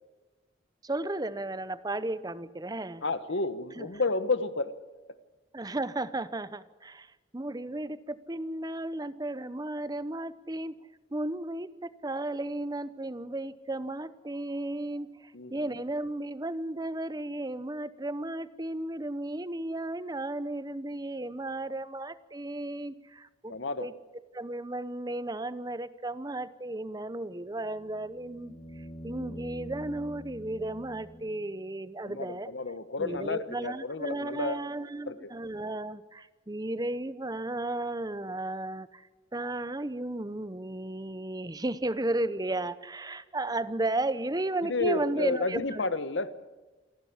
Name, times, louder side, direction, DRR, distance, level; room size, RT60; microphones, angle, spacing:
voice 1, 0.8-3.0 3.8-3.9 5.5-10.8 11.1-23.5 23.8-23.9 24.3-32.5 33.0-45.8, right 2 dB, 20° right, 15 dB, 0.8 m, -34 dB
voice 2, 3.0-4.7 15.3-15.5 23.5-23.9 32.0-34.7 35.1-35.3 44.6-46.3, left 3 dB, 65° left, 13 dB, 1.2 m, -31 dB
sound 1, 27.7-31.7 34.1-34.2, equal, 35° left, 1.7 m, -45 dB
27.5 x 11.5 x 10.0 m, 1.2 s
head